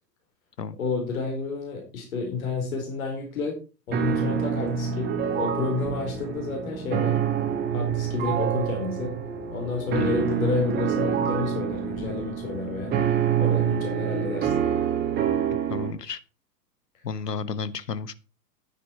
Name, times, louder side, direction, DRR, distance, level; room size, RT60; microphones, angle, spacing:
voice 1, 0.8-3.6 3.9-7.2 7.7-9.1 9.5-13.0 13.4-14.5, left 4 dB, 55° left, 2 dB, 4.6 m, -30 dB
sound 1, 3.9-13.8, left 3 dB, 20° left, 2.4 m, -43 dB
sound 2, 3.9-15.9, right 8 dB, 20° right, 1.8 m, -26 dB
voice 2, 15.7-16.2 17.0-18.1, left 5 dB, 75° left, 16 dB, 1.2 m, -32 dB
10.5 x 9.7 x 4.4 m, 0.32 s
figure-of-eight pair, 110°, 49 cm